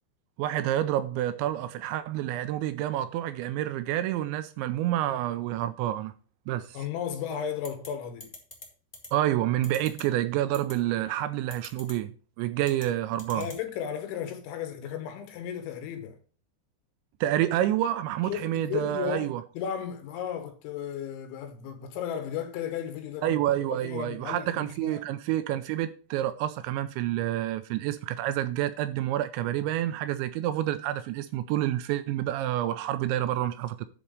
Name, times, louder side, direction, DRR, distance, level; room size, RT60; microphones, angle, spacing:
voice 1, 0.4-6.1 6.5-6.8 9.1-12.1 12.4-13.5 17.2-19.4 23.2-33.9, right 13 dB, 85° right, 2.7 m, -28 dB
voice 2, 6.7-8.3 13.3-16.2 18.3-19.3 19.5-23.4 23.7-25.0, left 9 dB, 75° left, 3.6 m, -34 dB
sound 1, 7.6-7.9 8.2-8.6 8.9-9.1 9.6-10.0 10.5-10.7 11.5-11.9 12.6-12.9 13.2-13.6, left 2 dB, 35° left, 0.7 m, -43 dB
10.0 x 4.3 x 6.6 m
omnidirectional pair, 5.5 m